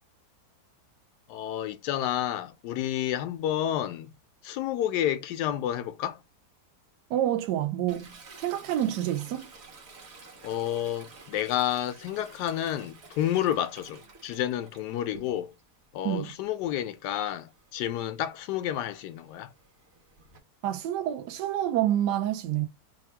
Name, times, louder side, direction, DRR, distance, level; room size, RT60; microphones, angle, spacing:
voice 1, 1.3-4.1 4.4-6.2 10.4-15.5 15.9-19.5, left 11 dB, 80° left, 1.2 m, -30 dB
voice 2, 7.1-8.1 8.4-9.5 16.0-16.3 20.6-22.7, right 12 dB, 80° right, 1.2 m, -28 dB
Toilet flush, 7.9-15.7 16.1-20.4, right 3 dB, 45° right, 1.2 m, -51 dB
3.4 x 2.4 x 4.4 m
omnidirectional pair, 1.8 m